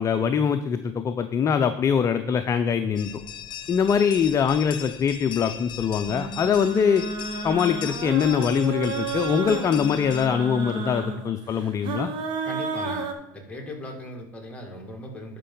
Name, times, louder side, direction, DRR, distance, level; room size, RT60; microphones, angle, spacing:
voice 1, 0.0-3.1 3.7-7.0 7.4-12.1, left 7 dB, 30° left, 9 dB, 0.5 m, -23 dB
sound 1, 3.0-10.3, left 10 dB, 45° left, 1.0 m, -39 dB
sound 2, 6.1-13.1, right 4 dB, 50° right, 1.4 m, -32 dB
voice 2, 12.4-13.1 13.3-15.4, left 1 dB, 10° left, 1 dB, 2.3 m, -38 dB
11.0 x 5.3 x 3.9 m, 0.95 s
supercardioid pair, 100°, 11 cm